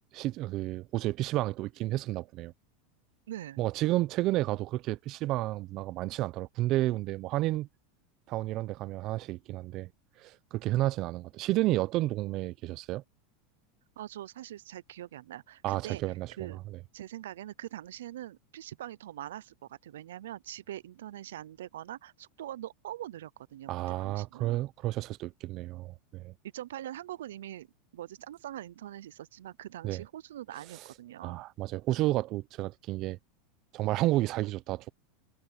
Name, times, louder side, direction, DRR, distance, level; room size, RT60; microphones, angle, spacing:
voice 1, 0.1-2.5 3.6-7.7 8.3-9.9 10.2-13.0 15.6-16.8 23.7-26.3 29.8-30.0 31.2-33.2 33.7-34.9, right 17 dB, 50° right, 0.8 m, -31 dB
voice 2, 3.3-3.6 14.0-16.0 16.4-16.6 16.9-24.6 26.5-27.7 27.9-31.4, right 12 dB, 85° right, 0.6 m, -43 dB
supercardioid pair, 115°, 0 cm